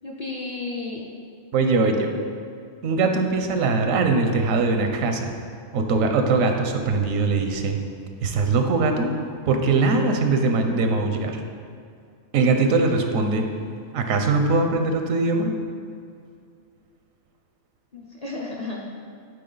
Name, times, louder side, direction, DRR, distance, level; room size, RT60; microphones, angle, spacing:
voice 1, 0.0-1.1 17.9-18.8, left 3 dB, 40° left, -2 dB, 0.6 m, -32 dB
voice 2, 1.5-2.1 2.8-5.3 5.7-7.8 8.2-9.1 9.5-11.4 12.3-13.5 13.9-15.5, right 3 dB, 90° right, 5 dB, 1.1 m, -21 dB
8.5 x 4.4 x 3.9 m, 2.3 s
omnidirectional pair, 1.3 m